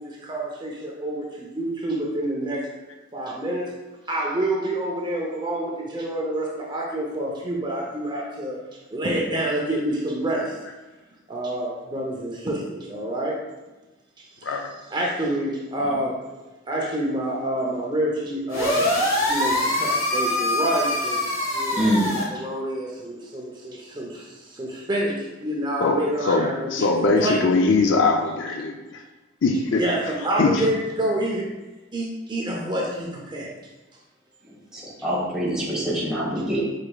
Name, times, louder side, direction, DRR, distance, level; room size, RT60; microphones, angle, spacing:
voice 1, 0.0-2.7 3.1-3.7 4.1-8.6 8.9-10.5 11.3-13.4 14.9-16.2 16.7-18.9 19.3-21.2 21.5-24.3 24.6-27.4 29.8-31.5 31.9-33.5, right 1 dB, 20° right, -2 dB, 0.6 m, -27 dB
sound 1, 18.5-22.2, left 1 dB, 85° left, 1.4 m, -24 dB
voice 2, 21.8-22.1 34.7-36.6, equal, 5° right, -7 dB, 1.2 m, -24 dB
voice 3, 25.8-29.0 29.4-29.8 30.4-30.7, left 3 dB, 65° left, 4 dB, 0.4 m, -21 dB
4.9 x 4.3 x 2.3 m, 1.1 s
head